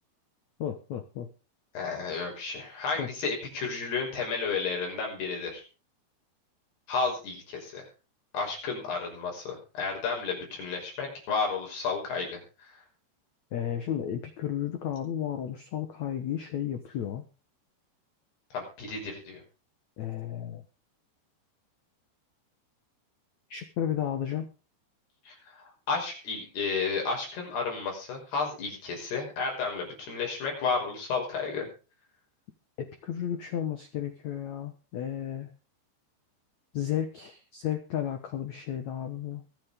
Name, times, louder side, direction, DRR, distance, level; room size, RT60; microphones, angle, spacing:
voice 1, 0.6-1.3 3.0-3.1 13.5-17.2 20.0-20.6 23.5-24.5 32.8-35.5 36.7-39.4, left 10 dB, 80° left, 8 dB, 1.6 m, -33 dB
voice 2, 1.7-5.6 6.9-7.9 8.3-12.8 18.5-19.4 25.3-31.7, left 4 dB, 60° left, 0 dB, 7.6 m, -32 dB
23.5 x 8.6 x 3.7 m, 0.34 s
omnidirectional pair, 5.3 m